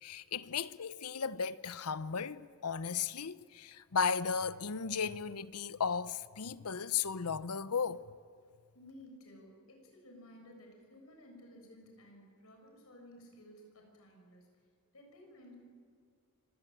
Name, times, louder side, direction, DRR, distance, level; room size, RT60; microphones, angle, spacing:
voice 1, 0.0-8.0, left 6 dB, 90° left, 0.8 m, -35 dB
voice 2, 8.7-14.5 14.9-15.5, left 1 dB, 70° left, 7.1 m, -55 dB
25.0 x 17.0 x 8.9 m
head